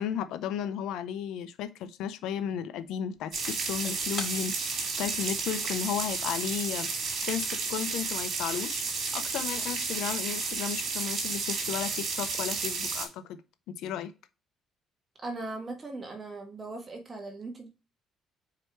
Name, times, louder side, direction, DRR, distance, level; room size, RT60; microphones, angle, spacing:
voice 1, 0.0-4.6 5.0-6.9 7.2-8.8 9.1-13.4 13.8-14.1, left 9 dB, 80° left, 0.6 m, -34 dB
Shatter / Crushing, 3.1-8.0, left 4 dB, 35° left, 2.6 m, -47 dB
sound 1, 3.3-13.1, right 4 dB, 55° right, 2.9 m, -32 dB
voice 2, 15.2-17.7, right 2 dB, 30° right, 1.6 m, -39 dB
4.9 x 4.5 x 4.6 m
cardioid pair, 90°, 0 cm